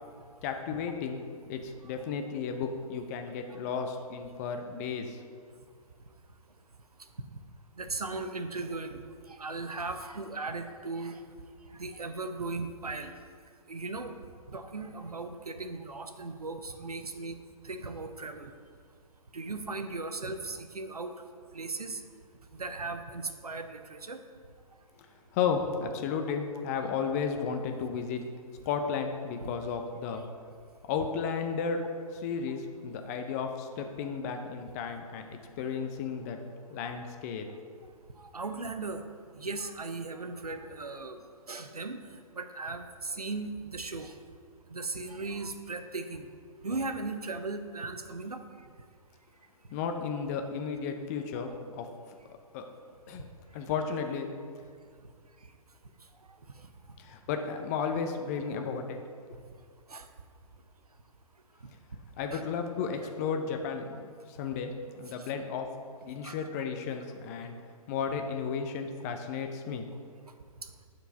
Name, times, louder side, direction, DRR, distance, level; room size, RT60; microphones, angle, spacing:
voice 1, 0.4-1.2 1.5-5.2 25.3-28.2 28.7-30.2 30.8-31.8 32.2-36.4 36.7-37.5 49.7-51.5 51.8-51.9 52.3-52.6 53.1-53.3 53.5-54.3 57.0-59.0 62.2-65.7 66.0-67.6 67.9-69.9, left 6 dB, 25° left, 5 dB, 0.6 m, -33 dB
voice 2, 7.8-11.2 11.7-13.2 13.7-14.1 14.5-17.4 17.6-18.5 19.3-21.1 21.5-22.0 22.5-24.2 29.4-29.5 30.1-30.2 38.2-39.0 39.3-41.2 41.5-42.0 42.3-44.1 44.7-46.3 46.6-48.4 58.5-58.6 59.9-60.1 61.6-61.7 62.3-62.4 66.2-66.4 70.6-70.7, right 3 dB, 85° right, 8 dB, 0.7 m, -37 dB
8.9 x 4.6 x 5.2 m, 2.1 s
figure-of-eight pair, 125°, 19 cm